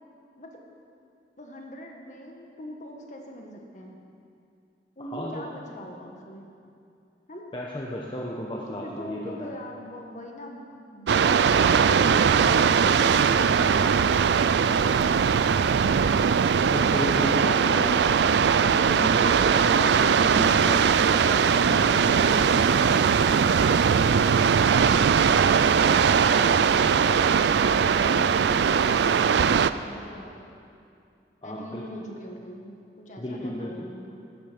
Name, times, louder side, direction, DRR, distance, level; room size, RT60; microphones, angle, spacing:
voice 1, 1.4-4.0 5.0-6.5 7.3-7.5 8.6-14.8 21.5-22.1 23.9-30.5 31.4-34.2, equal, 45° left, 1 dB, 1.6 m, -42 dB
voice 2, 5.0-5.4 7.5-9.5 16.7-18.2 18.7-20.8 21.1-22.7 31.4-31.8 33.2-33.9, left 1 dB, 30° left, -3 dB, 1.0 m, -34 dB
on the cliff top, 11.1-29.7, right 6 dB, 75° right, 0.4 m, -20 dB
14.0 x 12.0 x 5.2 m, 2.5 s
head